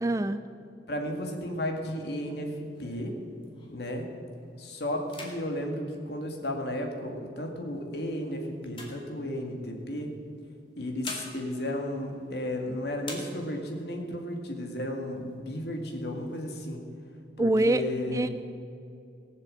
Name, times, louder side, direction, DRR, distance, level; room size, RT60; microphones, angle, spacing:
voice 1, 0.0-0.4 17.4-17.8 18.1-18.3, right 1 dB, 20° right, 11 dB, 0.4 m, -24 dB
voice 2, 0.9-3.1 3.7-4.1 4.6-10.2 10.8-16.8 17.4-18.3, left 1 dB, 65° left, 2 dB, 2.1 m, -34 dB
sound 1, 1.8-4.0 4.4-4.7 5.0-6.9 7.6-9.7 10.6-12.6 13.0-13.9 14.3-14.4 14.7-15.3 15.8-16.7, left 2 dB, 30° left, 2.1 m, -46 dB
18.5 x 7.5 x 7.6 m, 2.5 s
head